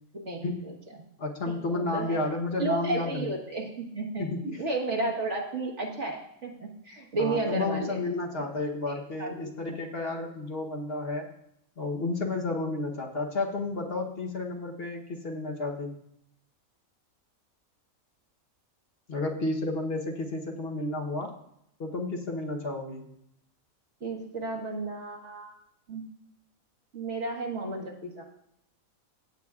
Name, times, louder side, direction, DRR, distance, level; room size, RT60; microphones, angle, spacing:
voice 1, 0.1-0.7 1.5-2.2 2.6-4.3 4.6-8.1 8.9-9.5 24.0-25.5 25.9-26.0 26.9-28.2, right 2 dB, 55° right, 0 dB, 1.7 m, -33 dB
voice 2, 1.2-3.3 4.2-4.6 7.2-11.3 11.8-16.0 19.1-21.3 21.8-23.1, left 2 dB, 50° left, 1 dB, 1.1 m, -32 dB
16.0 x 7.9 x 2.4 m, 0.76 s
omnidirectional pair, 1.5 m